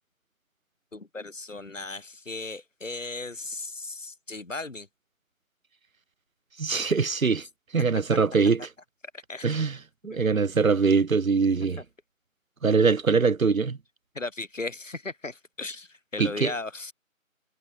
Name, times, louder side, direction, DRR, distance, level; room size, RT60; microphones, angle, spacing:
voice 1, 0.9-4.9 9.1-9.5 10.1-10.2 14.1-16.9, left 3 dB, 65° left, 5.4 m, -36 dB
voice 2, 6.6-7.5 7.7-8.6 9.4-9.8 10.0-11.8 12.6-13.8 16.2-16.5, right 5 dB, 75° right, 0.9 m, -22 dB
figure-of-eight pair, 160°, 41 cm